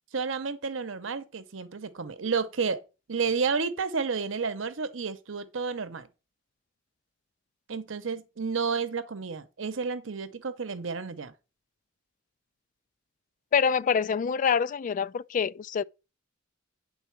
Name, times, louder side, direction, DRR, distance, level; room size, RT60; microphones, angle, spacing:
voice 1, 0.1-2.8 3.1-6.1 7.7-11.3, right 5 dB, 85° right, 0.8 m, -31 dB
voice 2, 13.5-15.8, left 6 dB, 40° left, 0.3 m, -26 dB
9.3 x 4.0 x 5.9 m
head